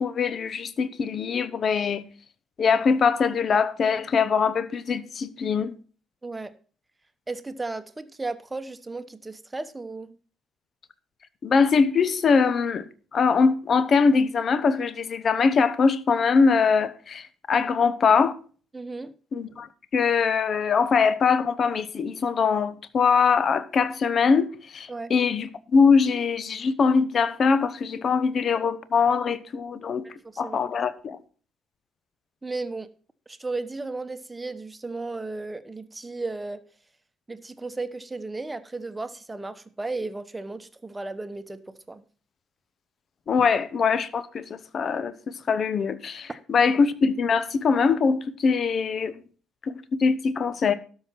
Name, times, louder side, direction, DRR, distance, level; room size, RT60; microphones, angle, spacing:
voice 1, 0.0-2.0 2.6-5.7 11.4-12.9 13.1-18.3 19.3-19.7 19.9-30.1 30.4-31.2 43.3-49.1 49.6-50.7, left 5 dB, 45° left, 0.8 m, -22 dB
voice 2, 6.2-6.5 7.3-10.2 18.7-19.1 24.9-25.1 30.2-30.6 32.4-32.9 33.3-36.6 37.3-42.0 46.6-46.7, right 3 dB, 15° right, 1.0 m, -34 dB
12.5 x 5.6 x 5.9 m
figure-of-eight pair, 50°, 0 cm